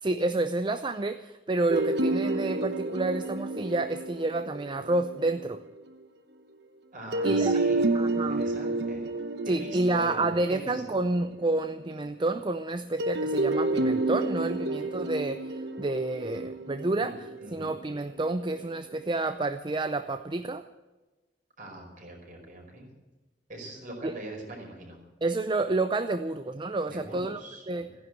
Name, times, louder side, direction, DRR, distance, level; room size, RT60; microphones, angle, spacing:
voice 1, 0.0-5.6 7.2-7.6 7.9-8.4 9.5-17.1 17.5-20.6 24.0-24.1 25.2-27.4 27.7-27.9, right 2 dB, 25° right, 9 dB, 0.6 m, -29 dB
sound 1, 1.7-5.5 7.1-11.6 13.0-18.2, right 2 dB, 70° right, 1.1 m, -30 dB
voice 2, 6.9-9.1 9.4-11.1 17.0-17.1 17.4-17.7 21.6-22.9 23.5-25.0 26.8-28.0, right 1 dB, 50° right, 1 dB, 4.9 m, -42 dB
15.0 x 10.5 x 7.8 m, 1.2 s
head